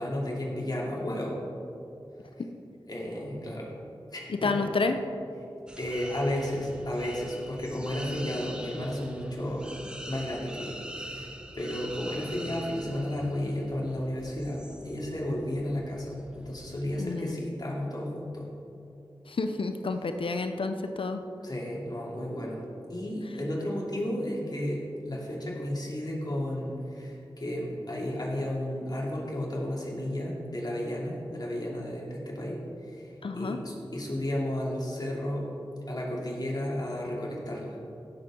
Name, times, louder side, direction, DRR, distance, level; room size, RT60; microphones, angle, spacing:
voice 1, 0.0-1.4 2.9-3.7 4.1-4.6 5.8-11.3 11.5-18.5 21.4-22.6 22.9-32.6 32.9-35.5 35.9-37.8, left 1 dB, 45° left, -4 dB, 2.7 m, -33 dB
voice 2, 4.3-5.0 17.0-17.4 19.3-21.2 33.2-33.6, left 3 dB, 75° left, 7 dB, 0.6 m, -29 dB
sound 1, 5.7-17.0, equal, 10° right, 1.3 m, -44 dB
16.0 x 6.9 x 3.8 m, 2.8 s
cardioid pair, 45°, 9 cm